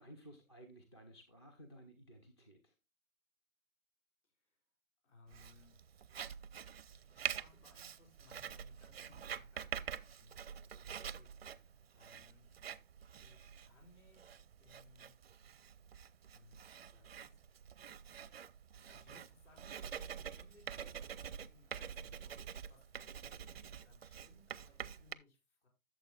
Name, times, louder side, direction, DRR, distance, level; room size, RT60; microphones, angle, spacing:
voice 1, 0.0-2.7, right 1 dB, 20° left, 5 dB, 0.5 m, -57 dB
voice 2, 4.2-4.6 5.0-5.8 6.9-12.5 13.2-15.4 16.3-17.7 18.9-25.7, left 2 dB, 55° left, 1 dB, 5.3 m, -66 dB
Writing, 5.3-25.1, right 8 dB, 45° right, 0.4 m, -47 dB
13.0 x 7.0 x 2.3 m, 0.25 s
hypercardioid pair, 150°, 43 cm